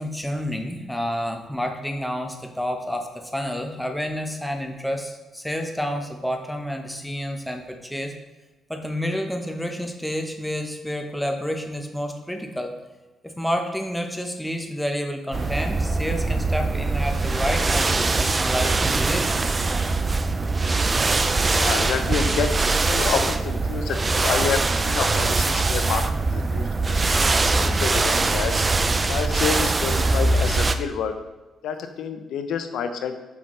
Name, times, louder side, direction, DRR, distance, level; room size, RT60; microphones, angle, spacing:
voice 1, 0.0-8.1 8.7-12.7 13.2-19.7, equal, ahead, 4 dB, 1.1 m, -29 dB
sound 1, 15.3-30.8, right 3 dB, 30° right, 0.5 m, -22 dB
voice 2, 21.5-22.5 22.9-28.5 29.1-31.1 31.6-33.2, left 7 dB, 80° left, 8 dB, 0.6 m, -28 dB
8.2 x 5.7 x 3.2 m, 1.2 s
cardioid pair, 80°, 0 cm